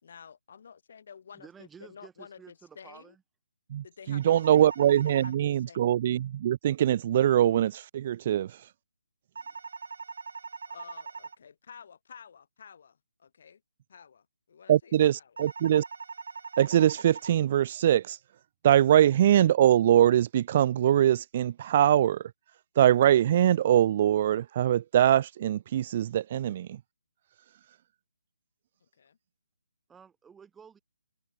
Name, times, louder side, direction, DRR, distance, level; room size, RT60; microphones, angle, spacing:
voice 1, 0.0-3.1 3.8-4.7 5.0-5.9 10.7-13.6 13.9-15.4 28.8-29.2, left 7 dB, 50° left, 6.1 m, -51 dB
voice 2, 1.3-3.2 29.9-30.8, right 6 dB, 5° right, 5.7 m, -52 dB
voice 3, 3.7-8.6 14.7-15.8 16.6-18.2 18.6-22.2 22.8-26.7, right 11 dB, 35° right, 0.4 m, -23 dB
sound 1, 4.2-5.3 9.3-11.3 15.4-17.3, right 5 dB, 65° right, 4.7 m, -41 dB
open air
hypercardioid pair, 160°, 0 cm